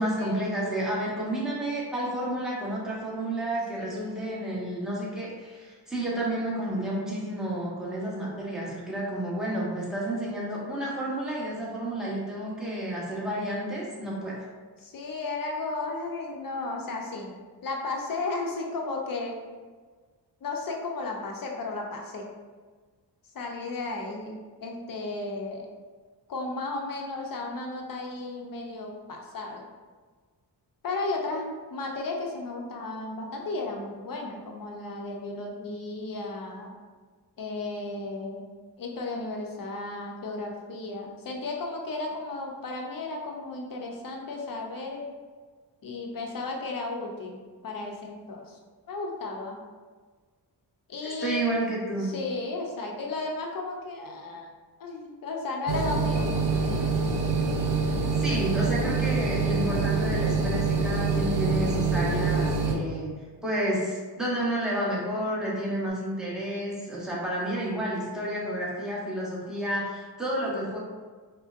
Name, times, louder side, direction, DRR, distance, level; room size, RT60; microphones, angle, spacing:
voice 1, 0.0-14.4 51.2-52.1 58.2-63.1 63.4-70.8, right 1 dB, ahead, -7 dB, 1.1 m, -30 dB
voice 2, 3.8-4.3 14.8-17.3 17.6-19.4 20.4-22.2 23.3-24.3 24.6-25.7 26.3-29.6 30.8-36.8 37.4-38.5 38.8-45.1 45.8-48.6 48.9-49.6 50.9-51.5 52.0-54.5 54.8-56.9 58.2-58.4 58.7-58.9, left 3 dB, 50° left, 1 dB, 0.7 m, -34 dB
sound 1, 55.7-62.7, right 4 dB, 80° right, 0.7 m, -25 dB
Bass guitar, 59.7-64.4 64.6-65.9, right 2 dB, 85° left, 0.9 m, -49 dB
5.0 x 2.2 x 2.5 m, 1.4 s
cardioid pair, 80°, 42 cm